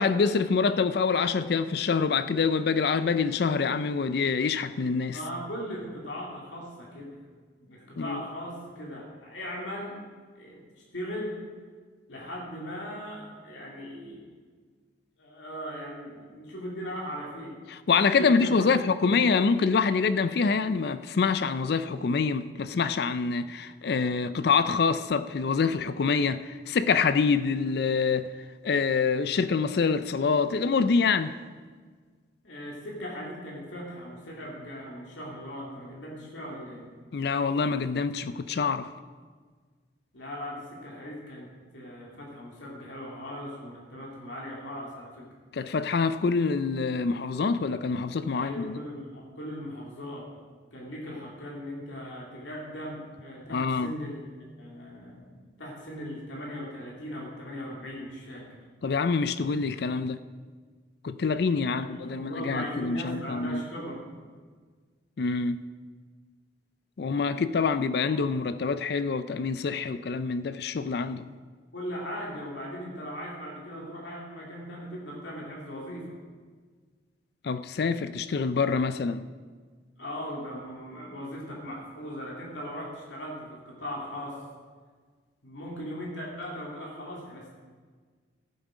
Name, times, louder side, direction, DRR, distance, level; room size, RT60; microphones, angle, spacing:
voice 1, 0.0-5.2 8.0-8.2 17.7-28.3 28.6-31.4 37.1-38.9 45.5-48.8 53.5-53.9 58.8-60.2 61.0-63.6 65.2-65.6 67.0-71.3 77.4-79.3, left 5 dB, 60° left, 0.4 m, -26 dB
voice 2, 5.1-7.2 7.6-10.0 10.4-10.6 10.9-11.4 12.1-14.3 15.2-17.6 18.2-18.7 19.1-19.2 32.4-36.9 40.1-45.3 48.3-50.3 50.7-54.2 54.6-58.5 61.5-64.1 68.1-68.2 71.7-76.0 80.0-84.4 85.4-87.5, equal, 90° left, 2.5 m, -38 dB
14.0 x 8.1 x 5.0 m
head